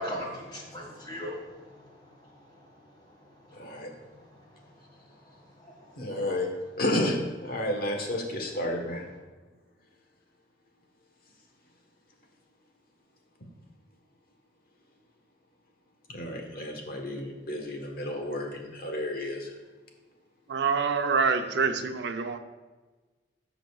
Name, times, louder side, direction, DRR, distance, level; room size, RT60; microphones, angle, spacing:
voice 1, 0.0-2.7 3.4-3.9 5.6-6.0, equal, 25° left, 1.9 m, -40 dB
voice 2, 3.5-3.9 6.0-6.5 6.8-9.1 13.4-13.5 16.1-19.6, left 1 dB, 55° left, 1.3 m, -31 dB
voice 3, 20.5-22.4, right 5 dB, 65° right, 0.6 m, -26 dB
14.5 x 5.2 x 2.4 m
head